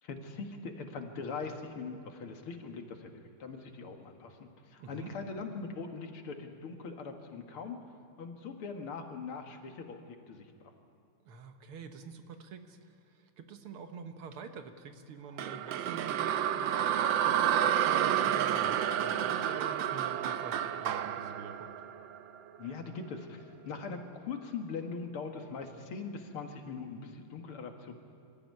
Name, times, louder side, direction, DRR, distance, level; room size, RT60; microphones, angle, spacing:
voice 1, 0.0-7.8 8.2-10.5 22.6-27.9, left 4 dB, 85° left, 4 dB, 2.7 m, -41 dB
voice 2, 4.8-5.1 11.3-21.7, right 5 dB, 90° right, 7 dB, 2.3 m, -46 dB
sound 1, 15.4-22.6, right 10 dB, 70° right, 1.4 m, -30 dB
26.0 x 14.5 x 9.5 m, 2.7 s
omnidirectional pair, 2.3 m